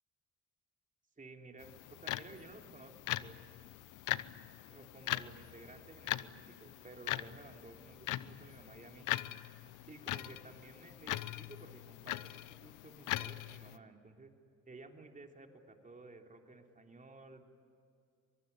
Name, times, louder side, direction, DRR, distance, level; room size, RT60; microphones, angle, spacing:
voice 1, 1.2-3.4 4.7-9.1 9.9-14.3 14.6-17.4, right 3 dB, 25° right, 3 dB, 3.4 m, -54 dB
sound 1, 1.6-13.8, left 15 dB, 90° left, 0.8 m, -41 dB
23.5 x 23.0 x 9.7 m, 2.4 s
cardioid pair, 90°, 30 cm